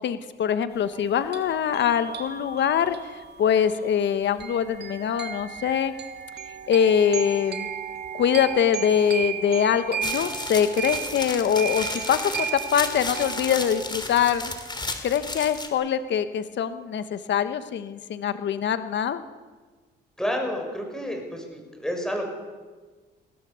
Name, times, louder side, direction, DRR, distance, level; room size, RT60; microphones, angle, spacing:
voice 1, 0.0-3.0 3.4-5.9 6.7-7.7 8.1-14.5 15.0-19.2, left 8 dB, 65° left, 11 dB, 1.2 m, -23 dB
sound 1, 0.9-13.9, right 7 dB, 60° right, 2.3 m, -35 dB
sound 2, 10.0-15.7, left 3 dB, 20° left, 2.9 m, -33 dB
voice 2, 20.2-22.3, equal, 5° left, 2 dB, 6.5 m, -30 dB
22.5 x 17.0 x 7.1 m, 1.4 s
cardioid pair, 90°, 20 cm